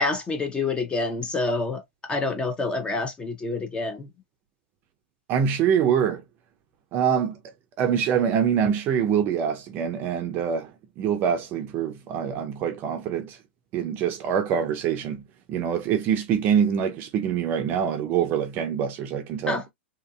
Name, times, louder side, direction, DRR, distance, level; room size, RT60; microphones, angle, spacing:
voice 1, 0.0-4.1 19.5-19.6, left 3 dB, 15° left, 0.7 m, -27 dB
voice 2, 5.3-6.2 6.9-7.4 7.8-10.7 11.0-13.4 13.7-15.2 15.5-19.6, right 8 dB, 35° right, 0.5 m, -24 dB
2.8 x 2.5 x 2.2 m
hypercardioid pair, 125°, 6 cm